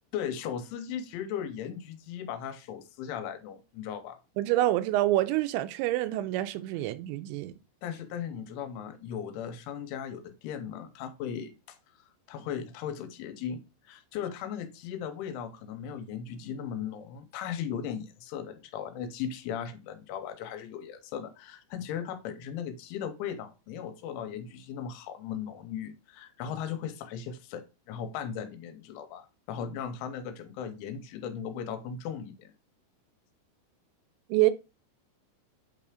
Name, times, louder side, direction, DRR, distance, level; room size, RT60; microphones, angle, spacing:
voice 1, 0.1-4.2 7.8-11.8 12.3-13.6 13.8-32.5, left 8 dB, 90° left, 3.3 m, -37 dB
voice 2, 4.4-7.5 34.3-34.5, right 15 dB, 85° right, 2.7 m, -26 dB
8.6 x 3.3 x 4.9 m
omnidirectional pair, 5.6 m